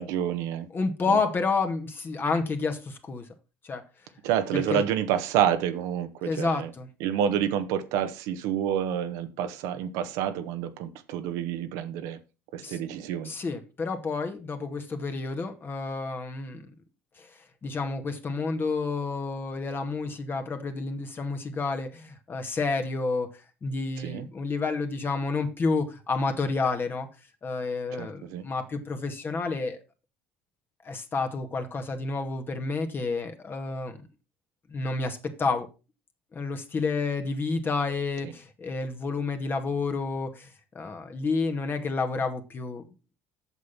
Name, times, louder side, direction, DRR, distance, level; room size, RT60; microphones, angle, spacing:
voice 1, 0.0-0.7 1.1-1.2 4.2-6.7 7.0-12.2 12.5-13.3 24.0-24.2 27.9-28.4 38.2-38.3, right 9 dB, 65° right, 1.2 m, -28 dB
voice 2, 0.7-3.3 3.6-3.8 4.5-4.8 6.2-6.9 12.6-12.8 13.2-16.6 17.2-17.3 17.6-23.3 23.6-27.1 27.4-29.8 30.8-34.0 34.7-35.7 36.3-40.5 40.7-42.9, left 4 dB, 35° left, 2.1 m, -30 dB
8.3 x 6.7 x 5.7 m
hypercardioid pair, 60°, 6 cm